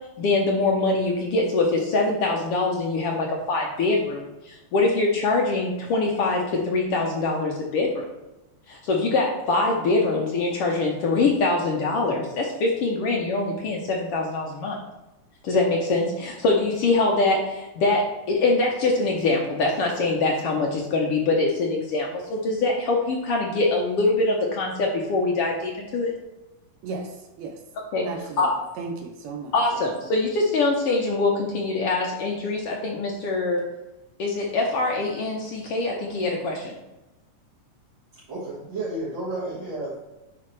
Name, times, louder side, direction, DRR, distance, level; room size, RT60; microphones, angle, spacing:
voice 1, 0.2-7.9 8.7-14.8 15.4-26.1 27.9-28.1 28.4-28.5 29.5-33.6 34.2-36.7, left 3 dB, 75° left, -1 dB, 1.4 m, -23 dB
voice 2, 26.8-27.6 28.0-28.5 28.8-29.8, right 4 dB, 70° right, 3 dB, 1.8 m, -35 dB
voice 3, 38.3-40.0, right 2 dB, 40° right, -8 dB, 2.1 m, -31 dB
10.5 x 4.0 x 3.2 m, 1.0 s
omnidirectional pair, 3.8 m